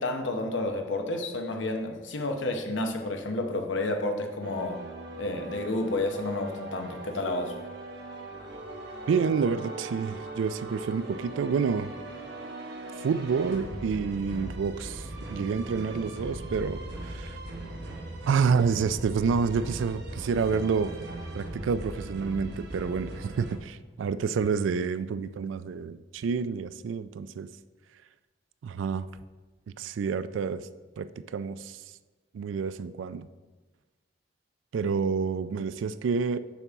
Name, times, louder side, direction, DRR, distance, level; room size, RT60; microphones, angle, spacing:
voice 1, 0.0-4.8 5.2-7.6, left 2 dB, 85° left, 4 dB, 0.8 m, -30 dB
sound 1, 4.4-23.6, right 2 dB, 60° right, 0.9 m, -39 dB
voice 2, 9.1-11.9 13.0-17.4 18.3-21.0 21.3-27.5 28.6-29.1 29.8-30.6 31.0-31.8 32.3-33.3 34.7-36.4, right 5 dB, 90° right, 14 dB, 0.3 m, -28 dB
6.9 x 5.9 x 3.5 m, 1.3 s
head